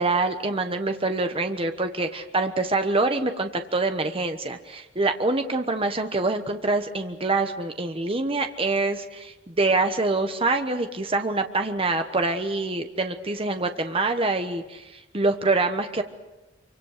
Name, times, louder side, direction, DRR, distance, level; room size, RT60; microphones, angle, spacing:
voice 1, 0.0-16.0, right 3 dB, 30° right, 6 dB, 1.2 m, -25 dB
26.0 x 25.0 x 6.7 m, 1.1 s
head